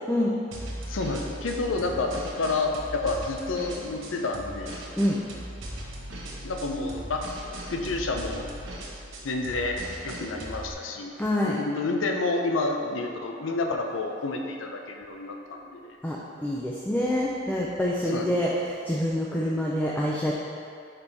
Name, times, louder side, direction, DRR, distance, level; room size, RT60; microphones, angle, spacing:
sound 1, 0.5-10.7, right 1 dB, 75° right, 0.9 m, -38 dB
voice 1, 0.9-4.7 6.4-7.2 7.7-8.4 9.2-9.8 10.0-11.1 11.4-15.6 18.1-18.3, left 3 dB, 85° left, 3 dB, 0.6 m, -29 dB
voice 2, 11.2-11.6 16.0-20.3, left 1 dB, 10° left, -4 dB, 0.4 m, -26 dB
5.3 x 4.5 x 4.0 m, 2.4 s
head